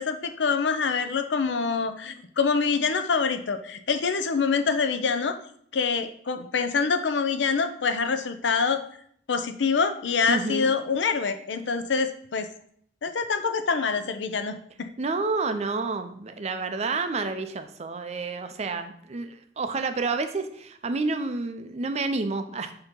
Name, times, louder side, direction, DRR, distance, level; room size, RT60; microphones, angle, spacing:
voice 1, 0.0-5.4 5.7-8.8 9.3-12.5 13.0-14.6, left 5 dB, 80° left, 9 dB, 0.6 m, -25 dB
voice 2, 10.3-10.7 15.0-22.7, right 3 dB, 35° right, 8 dB, 0.5 m, -29 dB
6.9 x 2.9 x 5.2 m, 0.64 s
head